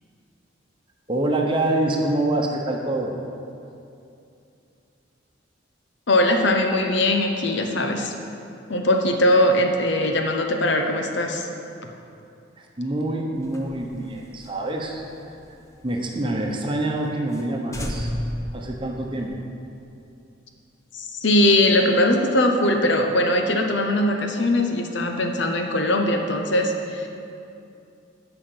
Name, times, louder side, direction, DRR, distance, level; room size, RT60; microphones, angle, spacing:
voice 1, 1.1-3.1 12.6-15.6 15.8-18.1 18.5-19.4, right 1 dB, 25° right, 0 dB, 1.0 m, -26 dB
voice 2, 6.1-8.1 8.7-11.5 20.9-27.1, left 1 dB, 65° left, 4 dB, 1.0 m, -21 dB
sound 1, 13.4-16.2 16.5-16.6 17.0-17.1 17.3-17.5 17.7-19.4, equal, 15° left, 0.8 m, -33 dB
11.0 x 5.9 x 7.9 m, 2.6 s
head